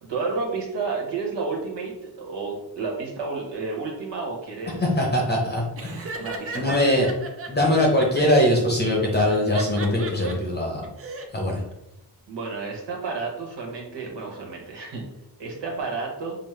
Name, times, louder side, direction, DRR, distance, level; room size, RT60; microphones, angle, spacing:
voice 1, 0.0-1.9 2.2-4.8 6.2-7.1 12.3-15.0 15.4-16.4, right 4 dB, 85° right, -1 dB, 1.2 m, -31 dB
voice 2, 4.8-6.1 6.5-7.1 7.5-10.9 11.3-11.6, left 1 dB, 25° left, -1 dB, 0.7 m, -22 dB
Laughter, 5.8-8.4 9.2-10.3 10.8-11.3, right 3 dB, 35° right, 0.5 m, -36 dB
5.3 x 2.1 x 3.2 m, 0.91 s
wide cardioid pair, 140°, 41 cm